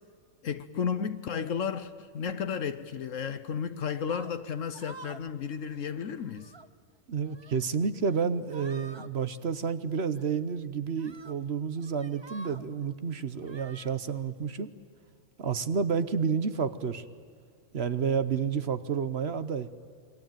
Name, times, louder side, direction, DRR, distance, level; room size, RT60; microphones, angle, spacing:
voice 1, 0.4-6.5, left 7 dB, 75° left, 1.2 m, -33 dB
sound 1, 4.0-4.3 4.7-5.3 5.6-5.8 6.2-6.7 7.2-7.7 8.0-8.2 8.5-9.1 10.2-10.3 11.0-11.4 11.8-12.7 13.4-13.9, right 3 dB, 25° right, 0.7 m, -49 dB
voice 2, 7.1-14.7 15.4-17.0 17.7-19.7, right 6 dB, 55° right, 1.2 m, -30 dB
28.5 x 23.0 x 9.2 m
omnidirectional pair, 1.4 m